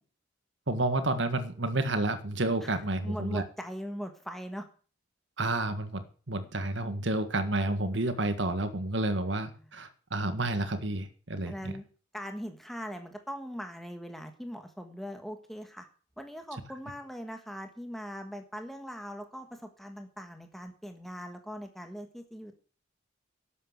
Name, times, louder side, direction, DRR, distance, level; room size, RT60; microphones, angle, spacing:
voice 1, 0.7-3.4 5.4-11.7, right 2 dB, 65° right, 10 dB, 1.7 m, -30 dB
voice 2, 3.0-4.7 11.4-11.8 12.1-15.9 16.2-22.6, equal, ahead, 5 dB, 1.5 m, -40 dB
11.5 x 8.3 x 8.1 m, 0.40 s
head